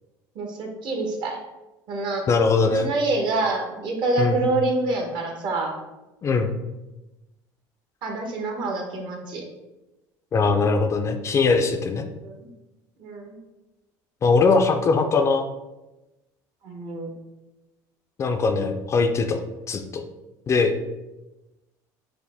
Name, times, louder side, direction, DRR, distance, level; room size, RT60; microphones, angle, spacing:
voice 1, 0.3-1.4 1.9-2.2 2.7-5.8 8.0-9.4 12.2-12.5 13.0-13.4 16.6-17.1, right 2 dB, 60° right, 2 dB, 1.0 m, -26 dB
voice 2, 2.3-2.9 4.2-4.4 6.2-6.5 10.3-12.0 14.2-15.5 18.2-19.4 19.7-20.0 20.5-20.8, left 4 dB, 35° left, 7 dB, 0.4 m, -21 dB
4.8 x 2.1 x 3.3 m, 1.0 s
supercardioid pair, 100°, 9 cm